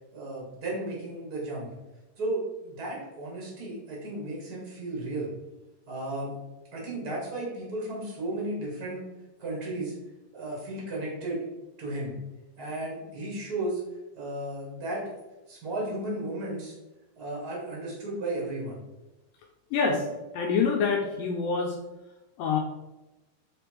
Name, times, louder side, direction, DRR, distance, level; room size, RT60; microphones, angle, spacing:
voice 1, 0.1-1.7 2.2-5.3 5.9-6.3 6.7-9.0 9.4-9.9 10.3-11.4 11.8-12.1 12.6-13.8 14.1-15.1 15.5-16.7 17.2-18.8, right 2 dB, 50° right, -4 dB, 1.1 m, -34 dB
voice 2, 19.7-20.1 20.3-21.8 22.4-22.6, left 5 dB, 85° left, 1 dB, 2.0 m, -26 dB
6.7 x 3.4 x 4.6 m, 1.0 s
omnidirectional pair, 4.6 m